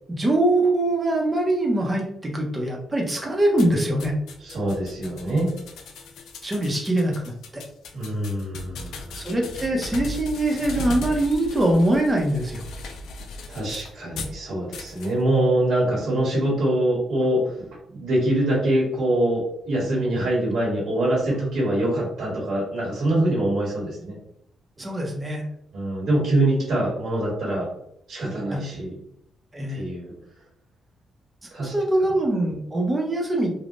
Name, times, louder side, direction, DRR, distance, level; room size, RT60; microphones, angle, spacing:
voice 1, 0.1-4.1 6.4-7.6 9.2-12.6 24.8-25.4 28.5-28.7 29.5-29.8 31.6-33.5, right 1 dB, 20° right, 0 dB, 0.8 m, -23 dB
sound 1, 3.6-14.4 14.7-15.1, left 1 dB, 90° left, 0.4 m, -37 dB
voice 2, 4.4-5.5 7.9-9.1 13.5-17.6 17.9-24.1 25.7-27.7 28.1-29.0 29.7-30.1 31.5-31.7 32.0-32.1, right 1 dB, 80° right, -5 dB, 1.5 m, -24 dB
3.5 x 2.3 x 2.5 m, 0.73 s
cardioid pair, 110°, 0 cm